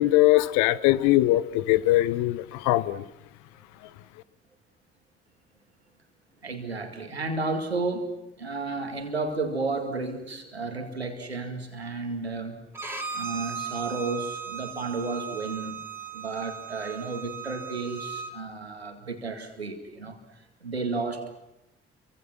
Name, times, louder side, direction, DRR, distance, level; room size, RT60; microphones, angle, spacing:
voice 1, 0.0-3.0, left 16 dB, 65° left, 18 dB, 1.0 m, -21 dB
voice 2, 6.4-8.1 8.4-12.6 13.1-15.8 16.1-21.3, right 3 dB, 90° right, 6 dB, 2.2 m, -32 dB
Bowed string instrument, 12.7-18.3, right 7 dB, 10° right, 4.4 m, -37 dB
30.0 x 24.0 x 6.0 m, 0.88 s
figure-of-eight pair, 40°, 31 cm